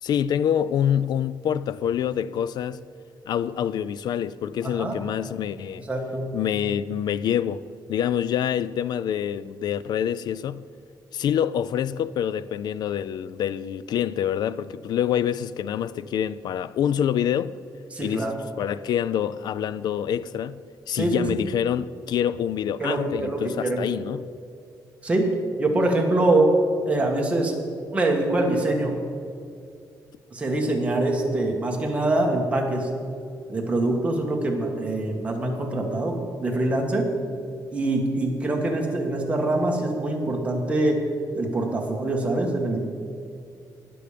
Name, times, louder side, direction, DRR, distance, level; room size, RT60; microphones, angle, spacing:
voice 1, 0.0-2.8 3.3-5.8 6.3-7.6 7.9-10.6 11.1-17.5 18.0-20.6 20.9-24.3, left 9 dB, 70° left, 0.4 m, -26 dB
voice 2, 4.6-5.0 5.9-6.3 17.9-18.3 20.9-21.4 22.8-23.8 25.0-25.3 25.6-26.6 26.8-27.5 27.9-29.0 30.3-32.9 33.5-37.1 37.7-41.0 41.3-42.8, right 2 dB, 15° right, 1.6 m, -24 dB
20.0 x 7.1 x 5.1 m
wide cardioid pair, 170°, 7 cm